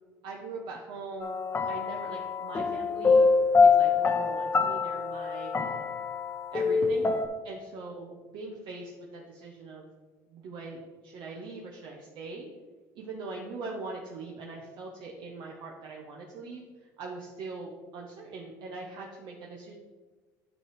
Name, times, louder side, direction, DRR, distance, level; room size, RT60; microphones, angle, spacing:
voice 1, 0.2-1.4 1.7-3.3 3.6-5.5 6.5-7.1 7.4-9.9 10.3-12.5 12.9-19.7, right 3 dB, 60° right, -1 dB, 1.1 m, -41 dB
sound 1, 1.2-7.3, left 4 dB, 25° left, 0.8 m, -25 dB
9.8 x 3.4 x 4.8 m, 1.3 s
hypercardioid pair, 80°, 9 cm